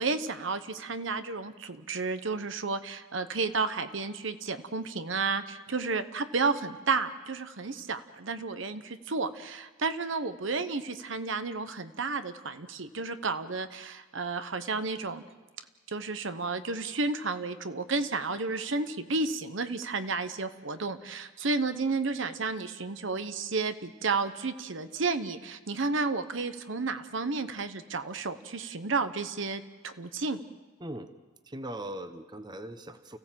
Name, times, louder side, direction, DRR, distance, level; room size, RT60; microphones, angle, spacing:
voice 1, 0.0-15.2 15.9-30.4, right 4 dB, 70° right, 10 dB, 1.0 m, -32 dB
voice 2, 30.8-31.1 31.4-33.2, right 1 dB, 20° right, 9 dB, 1.0 m, -40 dB
29.5 x 15.5 x 7.6 m, 1.4 s
head